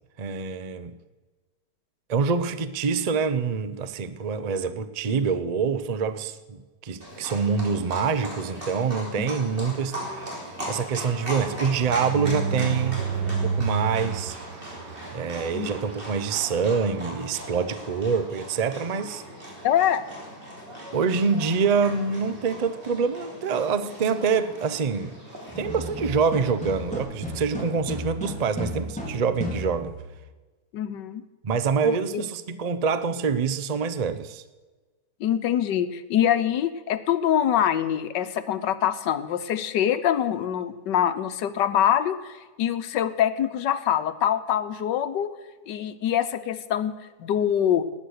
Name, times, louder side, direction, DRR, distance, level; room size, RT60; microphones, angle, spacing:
voice 1, 0.2-0.9 2.1-10.2 10.7-14.4 15.1-19.2 20.9-25.2 25.5-29.9 31.4-34.4, right 5 dB, 50° right, 0.4 m, -26 dB
Livestock farm animals working animals, 7.0-27.0, equal, 30° right, 3.4 m, -39 dB
sound 1, 9.9-18.1 18.5-18.7 18.9-19.0 19.3-19.6, right 5 dB, 75° right, 1.6 m, -33 dB
voice 2, 19.6-20.0 30.7-31.2 31.8-32.2 35.2-45.3 45.7-46.9 47.2-47.8, left 10 dB, 85° left, 1.5 m, -24 dB
sound 2, 25.5-30.1, equal, 5° left, 3.9 m, -34 dB
19.0 x 8.8 x 6.5 m
omnidirectional pair, 1.9 m